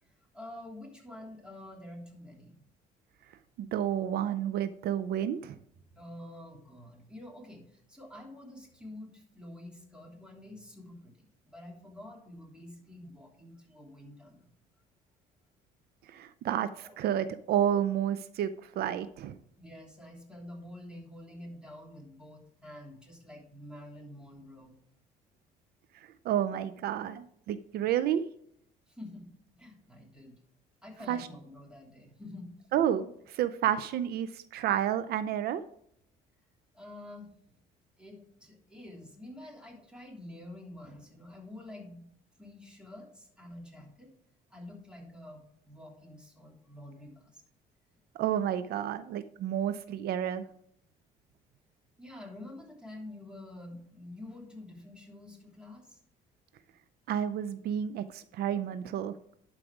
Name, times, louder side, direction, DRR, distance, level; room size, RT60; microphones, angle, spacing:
voice 1, 0.0-2.6 5.9-11.1 11.4-14.5 16.8-17.0 19.6-24.7 28.9-30.4 30.8-32.5 36.7-37.3 38.0-42.1 42.4-44.1 44.5-47.4 52.0-56.0, left 1 dB, 5° right, -1 dB, 3.1 m, -48 dB
voice 2, 3.6-5.5 16.1-19.4 26.2-28.3 31.1-31.2 32.7-35.6 48.2-50.4 57.1-59.2, right 10 dB, 70° right, 13 dB, 0.5 m, -30 dB
11.5 x 4.8 x 4.9 m, 0.69 s
cardioid pair, 110°, 17 cm